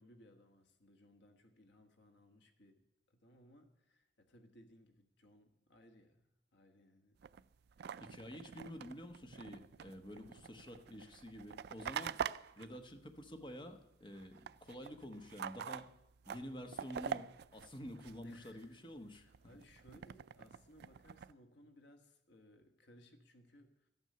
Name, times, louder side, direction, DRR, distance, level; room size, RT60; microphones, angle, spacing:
voice 1, 0.0-2.8 3.1-7.2 18.2-18.9 19.1-23.9, left 1 dB, 65° left, 6 dB, 1.4 m, -63 dB
sound 1, 7.2-13.8 14.0-18.7 19.1-21.3, right 8 dB, 60° right, 0.3 m, -46 dB
voice 2, 8.0-15.9 16.2-19.2, equal, 25° left, 6 dB, 1.2 m, -49 dB
13.0 x 9.5 x 6.7 m, 0.89 s
head